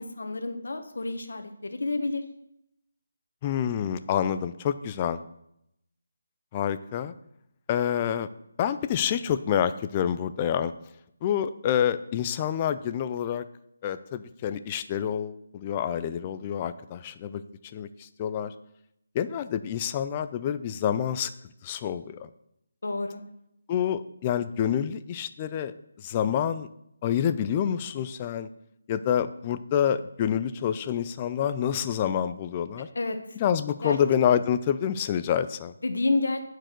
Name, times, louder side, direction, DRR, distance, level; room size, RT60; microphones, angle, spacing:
voice 1, 0.0-2.2 22.8-23.2 32.9-33.2 33.8-34.0 35.8-36.4, left 2 dB, 70° left, 7 dB, 1.1 m, -29 dB
voice 2, 3.4-5.2 6.5-7.1 7.7-8.3 8.6-10.7 11.2-13.4 13.8-17.4 17.7-18.5 19.1-21.3 21.6-22.3 23.7-26.7 27.0-28.5 28.9-32.9 33.4-35.7, left 9 dB, 20° left, 12 dB, 0.3 m, -27 dB
9.7 x 4.7 x 4.5 m, 0.80 s
figure-of-eight pair, 165°, 0 cm